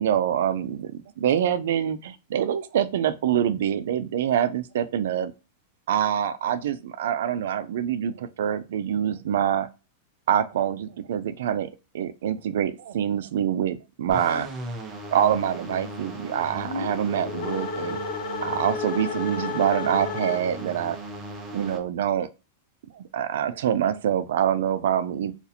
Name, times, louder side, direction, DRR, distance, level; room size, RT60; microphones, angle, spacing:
voice 1, 0.0-5.3 5.9-9.7 10.3-11.7 11.9-14.5 15.1-18.0 18.4-21.0 21.5-22.3 22.9-25.3, right 9 dB, 75° right, 0.4 m, -25 dB
sound 1, 14.1-21.8, right 1 dB, 20° right, 0.6 m, -38 dB
sound 2, 16.6-20.8, left 5 dB, 70° left, 1.1 m, -32 dB
2.6 x 2.4 x 4.1 m
supercardioid pair, 150°, 0 cm